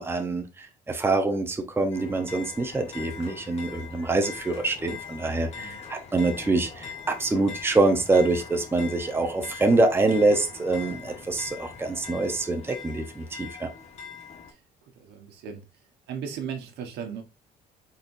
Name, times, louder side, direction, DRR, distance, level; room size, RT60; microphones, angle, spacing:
voice 1, 0.0-13.7, right 2 dB, 15° right, 0.9 m, -25 dB
sound 1, 1.9-14.5, left 6 dB, 40° left, 1.3 m, -42 dB
voice 2, 15.0-15.6 16.1-17.2, right 7 dB, 80° right, 1.3 m, -36 dB
4.4 x 4.3 x 2.6 m
cardioid pair, 110°, 17 cm